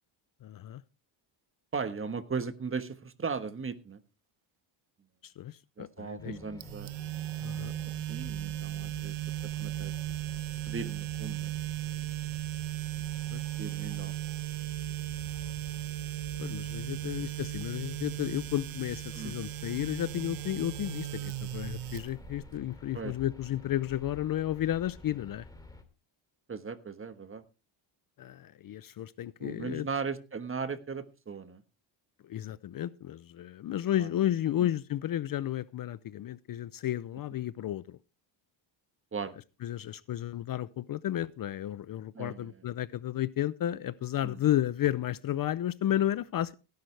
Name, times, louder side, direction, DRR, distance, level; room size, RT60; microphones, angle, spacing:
voice 1, 0.4-0.8 5.2-6.4 7.4-7.7 13.3-13.4 16.4-25.5 28.2-29.9 32.2-38.0 39.6-46.5, left 12 dB, 45° left, 0.6 m, -32 dB
voice 2, 1.7-4.0 5.8-6.9 8.1-9.2 9.4-9.9 10.7-11.5 11.9-12.2 13.6-14.2 16.5-16.6 16.9-17.3 19.1-19.3 22.9-23.1 26.5-27.4 29.4-31.6 34.0-34.1 39.1-39.3 42.1-42.6 44.2-44.4, right 5 dB, 25° right, 1.3 m, -37 dB
sound 1, 6.2-25.8, left 2 dB, 10° left, 2.6 m, -50 dB
sound 2, 6.6-22.6, right 15 dB, 75° right, 1.1 m, -36 dB
17.0 x 10.5 x 3.3 m
cardioid pair, 110°, 48 cm